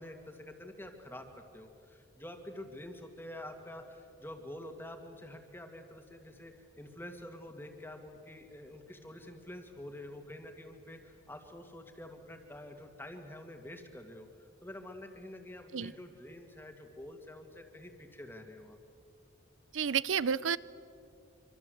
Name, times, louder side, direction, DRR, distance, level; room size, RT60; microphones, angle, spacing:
voice 1, 0.0-18.8, left 1 dB, 10° left, 4 dB, 2.1 m, -47 dB
voice 2, 19.7-20.6, right 7 dB, 85° right, 19 dB, 0.6 m, -30 dB
26.0 x 25.5 x 7.9 m, 2.4 s
head